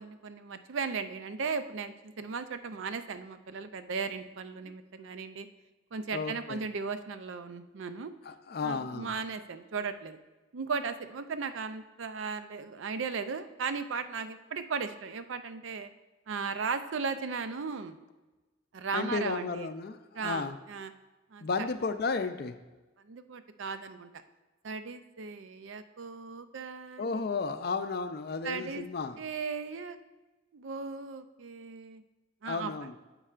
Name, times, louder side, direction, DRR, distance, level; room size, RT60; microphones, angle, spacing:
voice 1, 0.0-5.5 5.9-8.1 8.6-10.2 10.5-15.9 16.3-18.0 18.7-19.7 20.1-20.9 21.3-21.4 23.0-24.1 24.6-27.3 28.4-28.9 29.2-30.0 30.5-32.0 32.4-32.7, right 5 dB, 75° right, 10 dB, 0.5 m, -36 dB
voice 2, 6.1-6.6 8.3-9.1 18.9-20.6 21.4-22.6 27.0-29.2 32.5-32.9, left 4 dB, 50° left, 10 dB, 0.4 m, -33 dB
9.8 x 7.4 x 2.5 m, 1.2 s
head